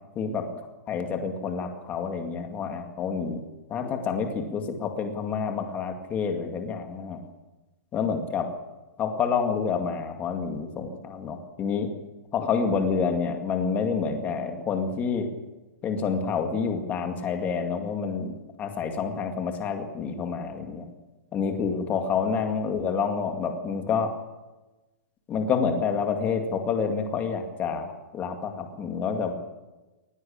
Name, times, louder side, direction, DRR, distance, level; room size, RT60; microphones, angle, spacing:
voice 1, 0.9-3.4 3.7-7.2 7.9-8.5 9.0-11.9 12.3-15.3 15.8-18.3 18.6-20.9 21.3-24.1 25.3-29.3, left 6 dB, 15° left, 4 dB, 2.2 m, -28 dB
20.0 x 19.5 x 8.8 m, 1.1 s
hypercardioid pair, 175°, 10 cm